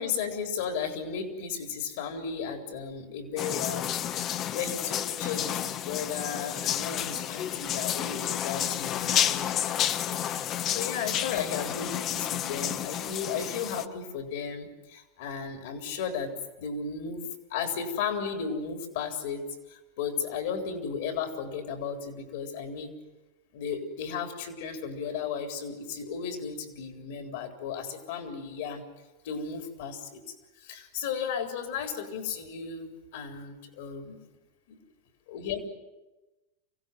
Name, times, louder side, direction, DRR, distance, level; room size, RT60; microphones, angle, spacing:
voice 1, 0.0-3.9 4.5-16.3 16.6-17.2 17.5-22.9 23.5-28.8 29.2-30.2 30.6-34.2 34.7-34.8 35.3-35.7, left 6 dB, 65° left, 5 dB, 3.7 m, -35 dB
sound 1, 3.4-13.9, left 10 dB, 40° left, 0.9 m, -31 dB
25.0 x 16.5 x 9.3 m, 1.1 s
hypercardioid pair, 100°, 0 cm